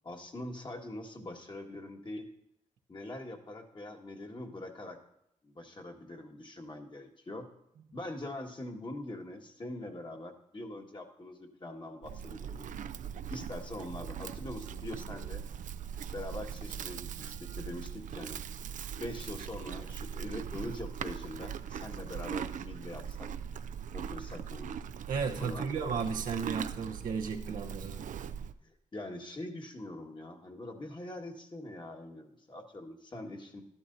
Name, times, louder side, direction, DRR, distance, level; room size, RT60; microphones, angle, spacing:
voice 1, 0.0-2.2 2.9-5.0 5.4-7.5 7.9-12.7 13.3-15.4 16.1-18.4 19.0-23.3 23.9-24.7 25.4-25.7 28.6-33.6, left 1 dB, 35° left, 2 dB, 1.6 m, -43 dB
Livestock farm animals working animals, 12.0-28.5, right 8 dB, 70° right, 0.4 m, -40 dB
voice 2, 25.1-28.0, right 5 dB, 85° right, 2 dB, 0.9 m, -34 dB
12.5 x 11.5 x 2.7 m, 0.78 s
cardioid pair, 55°, 14 cm